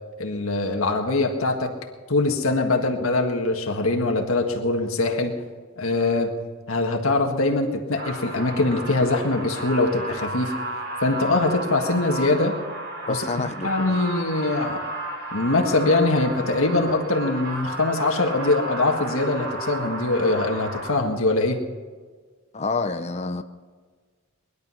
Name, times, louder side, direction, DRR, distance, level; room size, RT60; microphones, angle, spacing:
voice 1, 0.2-1.7 2.1-5.3 5.8-6.3 6.7-10.5 11.0-12.5 13.1-13.3 13.6-14.8 15.3-21.6, left 2 dB, 70° left, 1.7 m, -22 dB
sound 1, 8.0-20.9, right 1 dB, 50° right, 3.4 m, -33 dB
voice 2, 13.1-14.0 22.5-23.4, left 3 dB, 30° left, 0.7 m, -28 dB
21.0 x 11.5 x 5.7 m
head